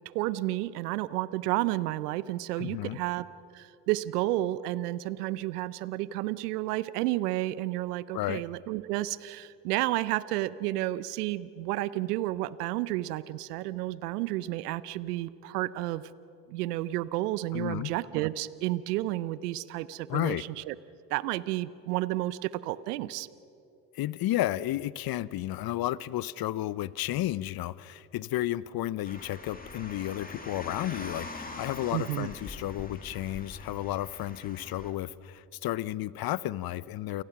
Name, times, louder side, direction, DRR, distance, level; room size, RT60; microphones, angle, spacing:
voice 1, 0.1-3.3 3.5-16.0 16.5-20.8 21.1-23.3 31.9-32.3, right 16 dB, 85° right, 17 dB, 0.7 m, -31 dB
voice 2, 2.6-3.0 8.1-8.4 17.5-17.9 20.1-20.4 23.9-37.2, left 14 dB, 50° left, 19 dB, 0.8 m, -32 dB
Car, 29.1-34.9, left 3 dB, 20° left, 2.8 m, -43 dB
29.0 x 18.0 x 6.0 m, 2.6 s
hypercardioid pair, 65°, 45 cm